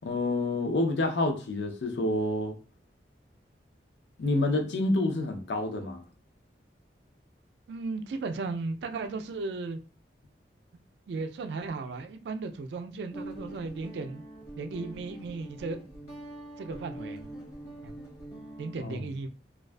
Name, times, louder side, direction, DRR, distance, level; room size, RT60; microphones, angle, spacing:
voice 1, 0.0-2.6 4.2-6.0 18.8-19.0, left 2 dB, 75° left, 0.5 m, -28 dB
voice 2, 7.7-9.8 11.1-14.2 14.6-15.8 16.6-17.2 17.8-17.9 18.6-19.3, right 3 dB, 70° right, 0.3 m, -35 dB
Guitar, 13.1-18.7, right 1 dB, 55° left, 0.9 m, -44 dB
2.4 x 2.3 x 2.2 m
head